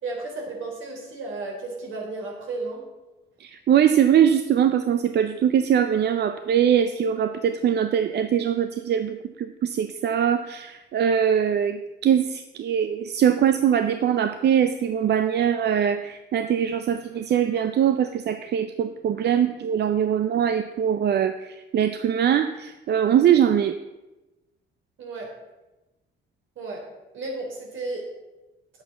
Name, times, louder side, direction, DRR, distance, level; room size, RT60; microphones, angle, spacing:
voice 1, 0.0-2.9 25.0-25.3 26.6-26.8 27.1-28.0, right 3 dB, 80° right, -1 dB, 3.6 m, -33 dB
voice 2, 3.4-23.7, right 9 dB, 60° right, 9 dB, 0.6 m, -22 dB
9.4 x 7.9 x 5.7 m, 1.0 s
cardioid pair, 90°, 20 cm